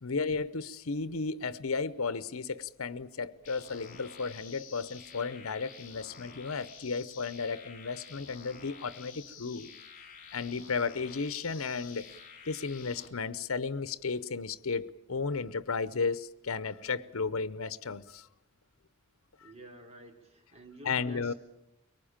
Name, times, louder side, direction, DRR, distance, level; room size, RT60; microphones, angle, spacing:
voice 1, 0.0-9.7 10.3-12.1 12.4-18.3 20.8-21.3, left 4 dB, 75° left, 0.8 m, -34 dB
sound 1, 3.4-13.1, left 6 dB, 40° left, 3.6 m, -50 dB
voice 2, 19.4-21.3, right 1 dB, 30° right, 3.2 m, -50 dB
23.5 x 19.5 x 8.8 m
head